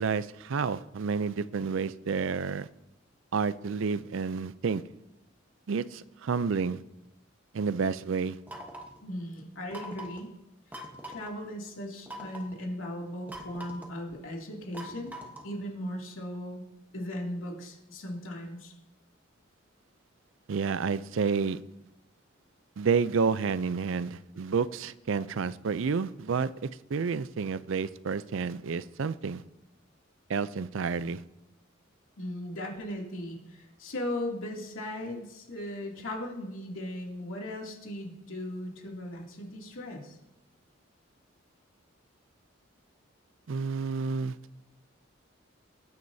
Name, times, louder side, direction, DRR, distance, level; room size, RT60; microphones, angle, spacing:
voice 1, 0.0-2.7 3.3-4.8 5.7-6.8 7.5-8.4 20.5-21.6 22.8-29.4 30.3-31.2 43.5-44.4, right 5 dB, 70° right, 0.4 m, -30 dB
sound 1, 8.5-9.0 9.7-10.2 10.7-11.3 12.1-12.5 13.3-14.0 14.7-15.6, equal, 10° right, 1.1 m, -42 dB
voice 2, 9.0-10.3 10.7-15.1 15.4-16.6 16.9-18.7 32.2-40.2, left 1 dB, 80° left, 2.6 m, -38 dB
20.0 x 9.5 x 2.7 m
head